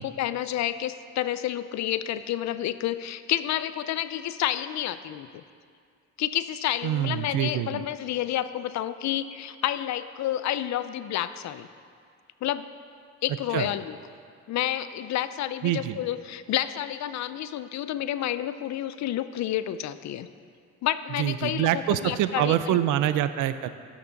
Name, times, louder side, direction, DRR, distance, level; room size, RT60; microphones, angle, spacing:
voice 1, 0.0-5.4 6.2-11.7 12.4-12.7 13.2-14.0 14.5-20.3 20.8-22.8, left 12 dB, 65° left, 13 dB, 0.5 m, -30 dB
voice 2, 6.8-7.8 13.5-13.7 15.6-16.0 21.2-23.7, right 12 dB, 85° right, 13 dB, 0.5 m, -25 dB
12.5 x 5.9 x 4.0 m, 2.2 s
cardioid pair, 90°, 30 cm